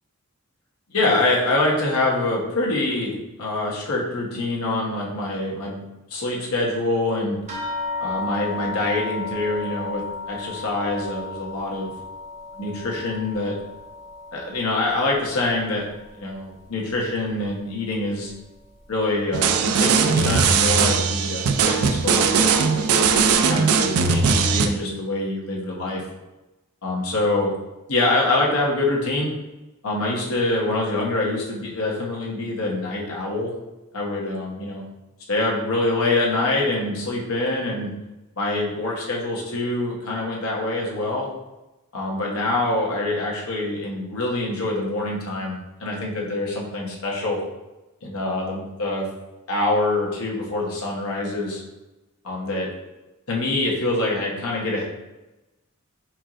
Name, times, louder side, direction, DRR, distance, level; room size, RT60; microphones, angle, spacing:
voice 1, 0.9-5.8 6.1-7.4 8.0-11.9 12.6-13.5 14.3-15.9 16.1-18.3 18.9-22.8 23.4-26.0 26.8-27.5 27.9-29.3 29.8-33.5 33.9-34.9 35.3-37.9 38.4-41.3 41.9-47.4 48.0-49.1 49.5-51.6 52.2-52.7 53.3-54.8, left 2 dB, 70° left, -2 dB, 1.1 m, -25 dB
sound 1, 7.5-16.3 16.6-17.5 18.2-18.3 18.8-18.9, left 4 dB, 30° right, 0.9 m, -34 dB
sound 2, 19.3-24.7, right 5 dB, 75° right, 0.4 m, -19 dB
4.5 x 4.3 x 2.5 m, 1.0 s
head